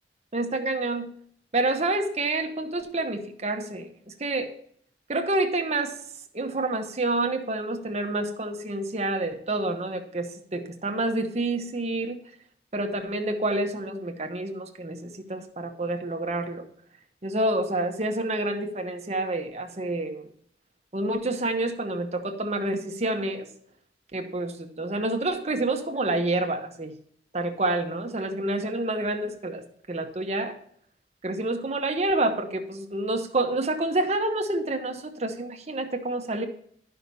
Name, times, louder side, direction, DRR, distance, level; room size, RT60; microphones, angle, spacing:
voice 1, 0.3-1.1 1.5-4.5 5.1-6.0 6.3-12.2 12.7-16.7 17.2-20.3 20.9-23.5 24.1-26.9 27.3-30.6 31.2-36.5, right 2 dB, 40° right, 5 dB, 1.0 m, -28 dB
11.0 x 5.7 x 4.0 m, 0.63 s
head